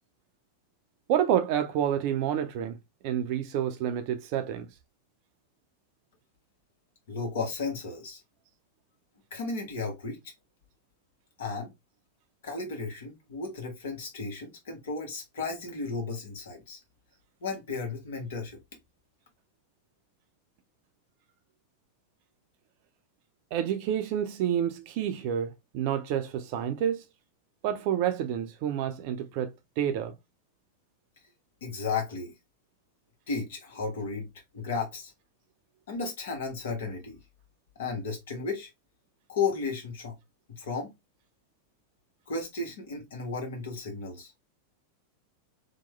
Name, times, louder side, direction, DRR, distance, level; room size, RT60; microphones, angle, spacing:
voice 1, 1.1-2.8 3.0-4.7 23.5-27.0 27.6-30.1, right 10 dB, 45° right, 0.5 m, -29 dB
voice 2, 7.1-8.2 9.3-10.2 11.4-11.7 12.4-16.8 17.4-18.6 31.6-32.3 33.3-34.3 34.5-35.1 35.9-37.2 37.8-38.7 39.3-40.2 40.5-40.9 42.3-44.3, left 4 dB, 60° left, 1.0 m, -34 dB
2.9 x 2.2 x 3.1 m
figure-of-eight pair, 90°, 0 cm